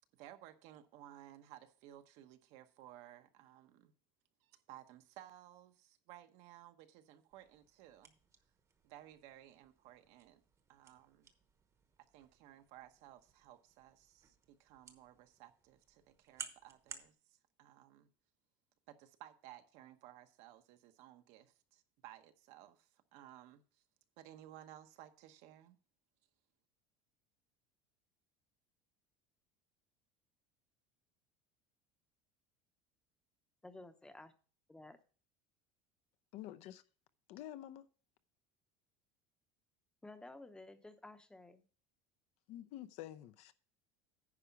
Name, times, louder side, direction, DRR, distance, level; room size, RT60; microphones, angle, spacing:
voice 1, 0.1-3.9 4.4-8.1 8.8-10.4 10.7-11.3 12.1-18.1 18.9-23.8 24.2-25.8, right 12 dB, 65° right, 1.0 m, -57 dB
sound 1, 7.3-17.1, right 6 dB, 25° right, 1.0 m, -56 dB
voice 2, 33.6-34.3 34.7-35.0 40.0-41.6, left 2 dB, 5° left, 0.8 m, -53 dB
voice 3, 36.3-36.8 37.3-37.9 42.5-43.5, left 12 dB, 60° left, 0.6 m, -48 dB
9.9 x 5.0 x 5.7 m
cardioid pair, 145°, 12 cm